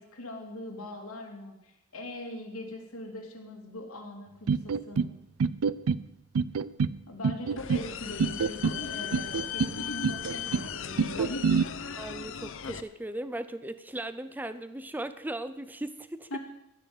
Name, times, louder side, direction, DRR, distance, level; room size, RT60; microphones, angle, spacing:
voice 1, 0.0-5.1 7.1-11.5 16.3-16.4, left 1 dB, 85° left, 1 dB, 3.0 m, -41 dB
sound 1, 4.5-5.1 5.4-6.0 6.3-7.0 7.2-7.9 8.2-8.8 9.1-9.7 10.0-10.7 11.0-11.6, right 5 dB, 85° right, 0.4 m, -26 dB
sound 2, 7.6-12.8, left 7 dB, 60° left, 0.8 m, -37 dB
voice 2, 11.2-11.5 12.0-16.4, right 1 dB, 10° right, 12 dB, 0.4 m, -38 dB
15.0 x 6.8 x 8.9 m, 0.88 s
head